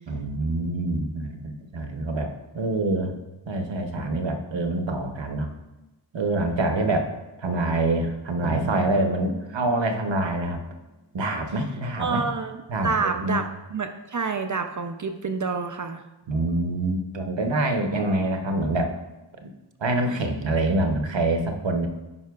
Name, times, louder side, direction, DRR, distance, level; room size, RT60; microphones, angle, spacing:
voice 1, 0.1-3.2 3.5-5.5 6.1-7.1 7.4-10.6 11.1-12.3 12.7-13.4 16.3-18.9 19.4-19.5 19.8-21.9, right 2 dB, 65° right, 5 dB, 0.9 m, -26 dB
Drum, 8.4-11.1, right 1 dB, 25° left, 0.9 m, -39 dB
voice 2, 12.0-16.0, right 4 dB, 40° right, 6 dB, 0.4 m, -28 dB
9.6 x 5.4 x 2.3 m, 1.0 s
wide cardioid pair, 90°, 48 cm